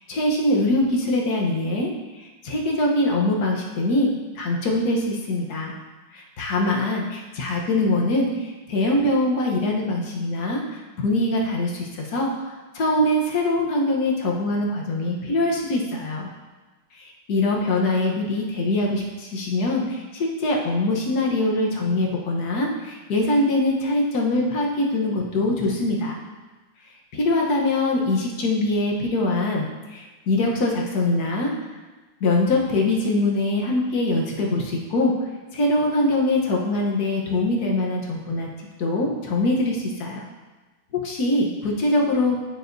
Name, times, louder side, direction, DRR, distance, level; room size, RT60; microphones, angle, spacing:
voice 1, 0.1-4.1 4.3-5.7 6.1-16.3 17.0-26.2 27.1-31.5 32.2-35.1 35.5-40.3 40.9-42.4, left 2 dB, 60° left, -1 dB, 1.5 m, -23 dB
9.0 x 6.4 x 2.6 m, 1.2 s
omnidirectional pair, 1.9 m